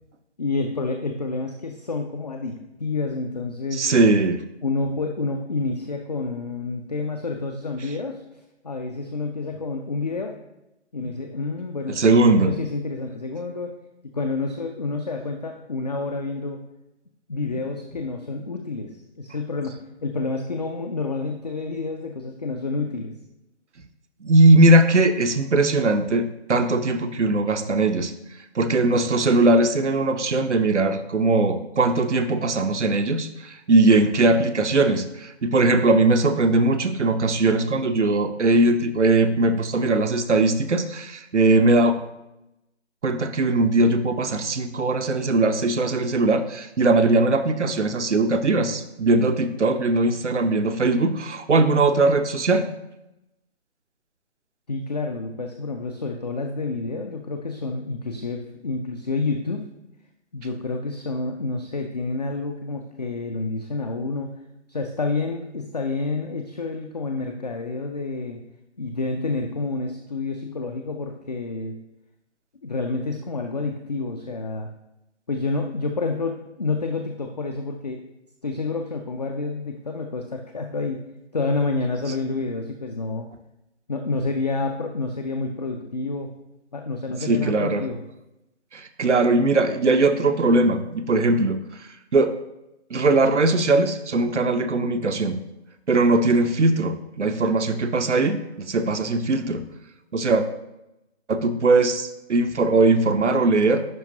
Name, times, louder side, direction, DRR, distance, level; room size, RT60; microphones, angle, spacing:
voice 1, 0.4-3.9 4.6-8.2 8.6-10.3 10.9-13.7 14.1-16.6 17.3-23.1 54.7-59.6 60.3-64.3 64.7-68.4 68.8-71.7 72.6-74.7 75.3-78.0 78.4-81.0 81.3-83.3 83.9-86.3 86.7-88.0, left 3 dB, 35° left, 4 dB, 0.4 m, -29 dB
voice 2, 3.7-4.4 11.9-12.5 24.2-28.1 28.5-42.0 43.0-52.7 87.2-87.8 88.7-91.6 92.1-92.3 92.9-95.3 95.9-99.6 100.1-100.4 101.3-103.9, right 2 dB, 80° right, 8 dB, 0.8 m, -20 dB
10.5 x 4.3 x 2.8 m, 0.93 s
figure-of-eight pair, 150°, 35 cm